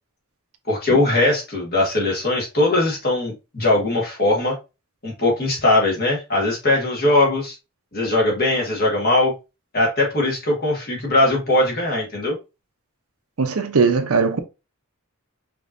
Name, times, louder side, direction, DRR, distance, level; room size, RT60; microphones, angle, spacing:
voice 1, 0.7-4.6 5.0-7.5 7.9-9.3 9.7-12.4, left 2 dB, 45° left, 1.7 m, -20 dB
voice 2, 13.4-14.4, right 4 dB, 70° right, 0.7 m, -19 dB
5.1 x 3.0 x 2.6 m
head